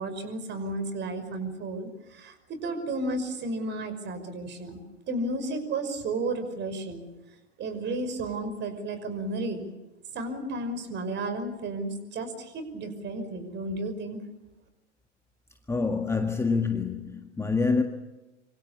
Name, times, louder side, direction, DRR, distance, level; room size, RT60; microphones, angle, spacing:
voice 1, 0.0-4.8 5.1-7.1 7.6-9.7 10.1-14.2, right 2 dB, 30° right, 5.8 m, -33 dB
voice 2, 15.7-17.8, left 4 dB, 5° left, 1.8 m, -26 dB
26.5 x 26.5 x 7.2 m
figure-of-eight pair, 95°, 36 cm